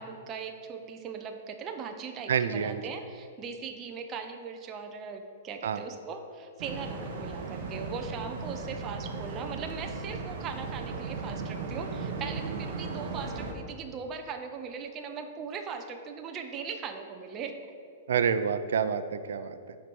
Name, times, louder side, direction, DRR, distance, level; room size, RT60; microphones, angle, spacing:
voice 1, 0.0-17.6, right 5 dB, 20° right, 5 dB, 0.4 m, -39 dB
voice 2, 2.3-2.8 5.6-5.8 18.1-19.8, right 7 dB, 75° right, 11 dB, 0.4 m, -28 dB
sound 1, 6.6-13.5, right 4 dB, 40° right, 1.0 m, -37 dB
9.0 x 4.5 x 5.3 m, 2.4 s
hypercardioid pair, 175°, 0 cm